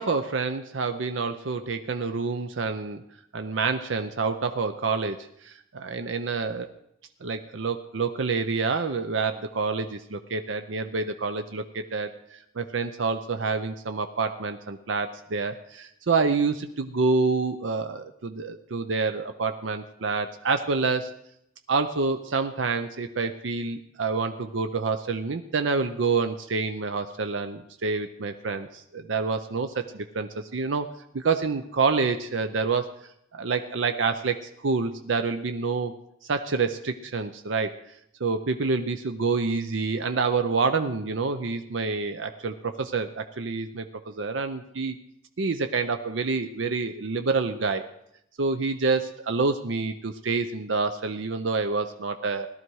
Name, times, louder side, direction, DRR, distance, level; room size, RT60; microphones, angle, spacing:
voice 1, 0.0-3.0 3.3-6.7 7.2-21.1 21.7-30.9 31.1-32.9 33.3-35.9 36.3-37.8 38.2-45.0 45.4-47.8 48.4-52.5, right 4 dB, 75° right, 8 dB, 0.6 m, -27 dB
17.0 x 12.5 x 4.7 m, 0.76 s
head